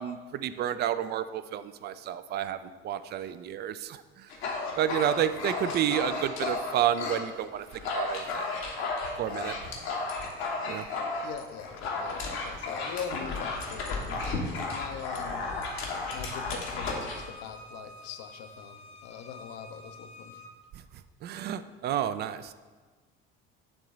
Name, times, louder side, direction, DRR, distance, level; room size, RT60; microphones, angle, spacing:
voice 1, 0.0-2.6 2.8-4.3 4.8-7.7 7.9-8.5 9.2-9.5 10.7-10.9 21.2-22.5, right 10 dB, 30° right, 12 dB, 0.4 m, -30 dB
Dog, 4.3-7.2 7.6-17.3, left 3 dB, 70° left, 1.2 m, -34 dB
voice 2, 11.2-15.4 16.1-20.4, left 8 dB, 50° left, 8 dB, 0.7 m, -42 dB
Bowed string instrument, 15.3-20.5, left 2 dB, 20° left, 0.8 m, -49 dB
7.8 x 3.8 x 5.3 m, 1.4 s
figure-of-eight pair, 55°, 32 cm